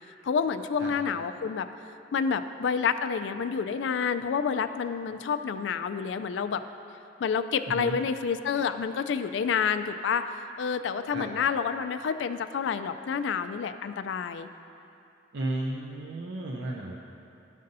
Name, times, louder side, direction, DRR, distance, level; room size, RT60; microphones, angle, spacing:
voice 1, 0.2-1.7 2.1-6.6 7.2-10.2 10.6-14.5, left 6 dB, 70° left, 10 dB, 0.3 m, -28 dB
voice 2, 15.3-17.0, right 2 dB, 65° right, -2 dB, 0.5 m, -33 dB
13.0 x 5.4 x 2.6 m, 2.7 s
head